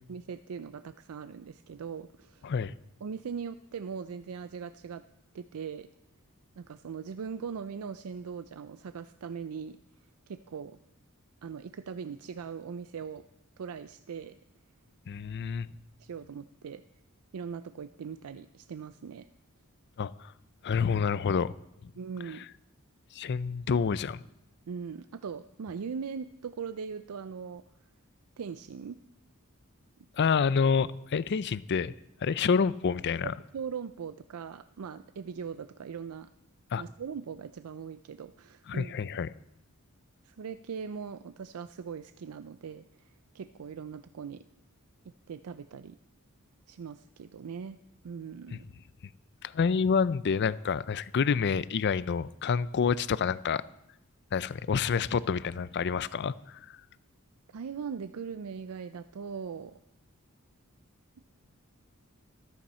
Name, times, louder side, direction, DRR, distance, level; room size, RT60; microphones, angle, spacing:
voice 1, 0.1-2.5 3.0-5.0 5.3-5.9 6.6-9.8 10.3-10.8 11.4-13.2 13.6-14.4 16.0-16.8 17.3-19.3 22.0-22.5 24.7-27.6 28.4-29.0 33.5-36.3 36.8-39.2 40.2-44.4 45.3-46.0 46.7-47.8 48.0-48.7 57.5-59.8, right 6 dB, 85° right, 12 dB, 0.4 m, -40 dB
voice 2, 2.4-2.7 15.1-15.7 20.0-20.3 20.6-21.5 23.1-24.2 30.2-31.9 32.2-33.3 36.7-36.8 38.7-39.3 49.4-53.6 54.3-56.6, left 6 dB, 55° left, 18 dB, 0.4 m, -28 dB
14.0 x 13.0 x 4.3 m, 0.84 s
head